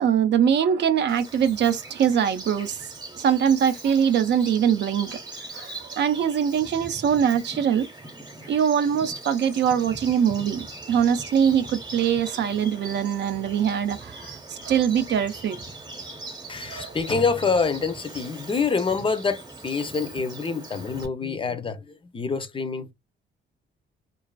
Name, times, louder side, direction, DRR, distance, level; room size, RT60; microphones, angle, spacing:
voice 1, 0.0-5.2 5.5-7.9 8.5-15.6 16.7-16.9, right 8 dB, 60° right, 0.5 m, -23 dB
Bird vocalization bird call bird song, 1.1-21.1, right 2 dB, 20° right, 0.8 m, -41 dB
voice 2, 16.5-22.9, left 5 dB, 25° left, 0.5 m, -26 dB
2.5 x 2.3 x 2.2 m
cardioid pair, 90°, 20 cm